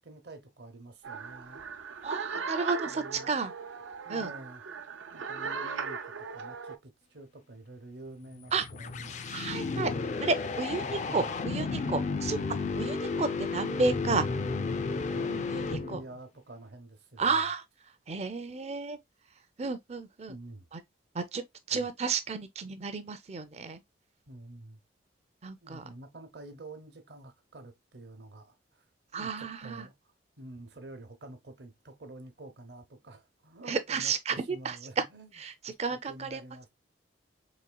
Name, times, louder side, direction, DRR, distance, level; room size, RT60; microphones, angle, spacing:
voice 1, 0.0-1.6 2.8-3.4 4.0-4.6 5.1-6.0 6.3-10.1 11.0-11.3 13.1-13.3 15.1-17.3 20.3-20.7 21.7-21.9 24.3-24.8 25.6-28.8 29.1-29.9 30.4-35.4 35.7-36.7, right 1 dB, 60° right, 0.8 m, -48 dB
sound 1, 1.0-6.8, right 5 dB, 90° right, 0.5 m, -38 dB
voice 2, 2.0-3.5 4.1-4.3 8.5-8.7 9.3-9.9 10.2-12.4 12.8-14.3 15.2-16.0 17.2-17.6 18.1-19.0 19.6-20.3 20.7-20.8 21.1-21.4 21.7-23.8 25.4-25.9 29.1-29.9 33.7-35.0 35.4-36.4, right 4 dB, 35° right, 0.5 m, -32 dB
sound 2, 8.4-16.2, left 4 dB, 35° left, 0.3 m, -33 dB
4.1 x 3.1 x 2.2 m
head